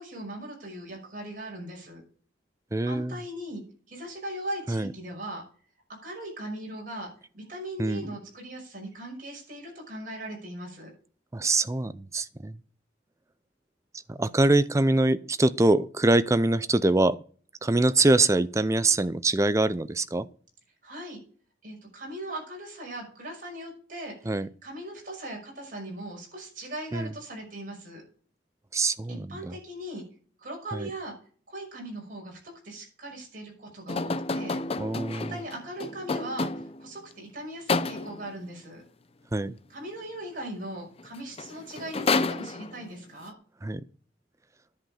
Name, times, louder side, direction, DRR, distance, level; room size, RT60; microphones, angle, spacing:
voice 1, 0.0-2.0 2.8-3.6 3.9-5.4 6.0-10.9 20.8-21.2 21.6-28.0 29.1-30.0 30.4-31.2 31.5-32.4 32.6-34.6 35.1-38.8 39.7-43.3, right 1 dB, 50° right, 5.7 m, -39 dB
voice 2, 2.7-3.2 4.7-4.9 7.8-8.1 11.3-12.6 14.1-17.2 17.6-20.3 24.3-24.5 26.9-27.1 28.7-29.6 30.7-30.9 34.8-35.3 39.3-39.6 43.6-43.8, right 2 dB, 15° right, 0.4 m, -24 dB
sound 1, 33.9-36.9 37.7-38.3 41.0-41.1 41.4-43.0, left 3 dB, 30° left, 0.5 m, -30 dB
10.5 x 7.8 x 4.9 m
head